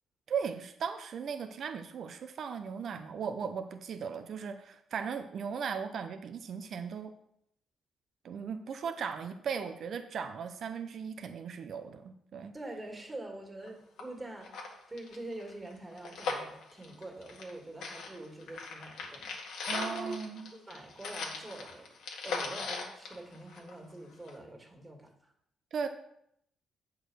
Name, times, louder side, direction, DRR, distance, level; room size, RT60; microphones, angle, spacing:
voice 1, 0.3-7.1 8.2-12.5 19.7-20.5 25.7-25.9, right 6 dB, 60° right, 7 dB, 0.6 m, -37 dB
voice 2, 12.5-20.2 20.5-21.9 22.2-25.1, right 2 dB, 20° right, 2 dB, 2.3 m, -45 dB
sound 1, 13.6-13.7 14.0-14.1 14.4-17.5 17.8-23.9 24.3-24.4, left 4 dB, 75° left, 1.8 m, -39 dB
8.1 x 4.7 x 6.3 m, 0.75 s
cardioid pair, 90°, 0 cm